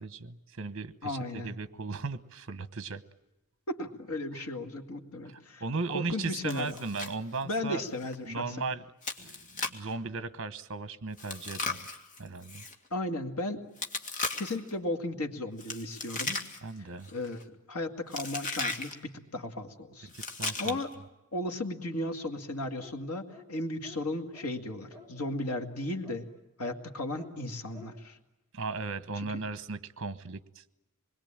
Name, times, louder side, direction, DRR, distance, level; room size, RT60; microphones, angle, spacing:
voice 1, 0.0-3.0 4.3-4.4 5.2-7.8 8.2-8.8 9.2-11.9 12.2-12.6 16.6-17.1 20.1-20.8 28.5-30.6, right 3 dB, 60° right, 13 dB, 1.1 m, -37 dB
voice 2, 1.0-1.5 3.7-5.6 5.9-6.8 7.4-8.6 12.9-13.7 14.4-16.4 16.8-20.1 20.6-20.9 21.3-26.3 26.6-28.2 29.2-29.4, left 1 dB, 90° left, 5 dB, 2.3 m, -35 dB
Chewing mastication, 6.5-7.1 7.4-7.5 8.0-8.2 9.0-9.9 11.2-12.7 13.8-14.7 15.6-16.8 17.0-17.4 18.1-18.9 20.1-20.9, left 3 dB, 35° left, 2.0 m, -36 dB
sound 1, 22.8-23.0 23.3-23.5 23.8-24.0 24.3-24.5 24.9-25.1 25.5-25.6 26.0-26.2 26.6-26.8 27.2-27.3 27.7-27.9, left 3 dB, 15° right, 5.5 m, -51 dB
26.5 x 21.5 x 8.8 m, 0.96 s
head